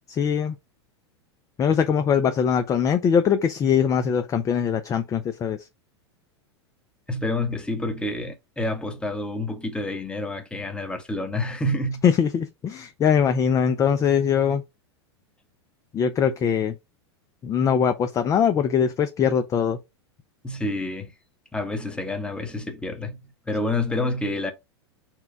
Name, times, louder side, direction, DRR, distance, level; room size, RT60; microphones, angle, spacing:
voice 1, 0.1-0.5 1.6-5.6 12.0-14.6 15.9-16.8 17.4-19.8, left 7 dB, 20° left, 0.4 m, -22 dB
voice 2, 7.1-12.0 20.4-21.1 21.5-23.2 23.5-24.5, left 2 dB, 5° left, 0.9 m, -28 dB
4.4 x 2.2 x 4.6 m
hypercardioid pair, 100°, 15 cm